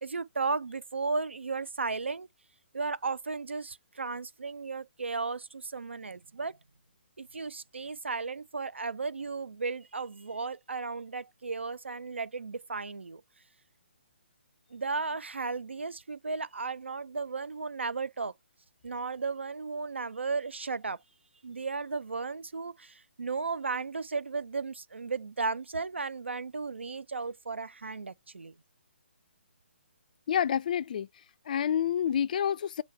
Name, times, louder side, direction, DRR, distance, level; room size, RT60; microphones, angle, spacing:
voice 1, 0.0-2.3 2.7-6.6 7.2-13.2 14.7-18.3 18.8-21.0 21.4-28.5, right 4 dB, 75° right, 0.4 m, -35 dB
voice 2, 30.3-31.1 31.5-32.8, left 9 dB, 45° left, 0.3 m, -28 dB
6.2 x 2.2 x 3.4 m
figure-of-eight pair, 135°, 6 cm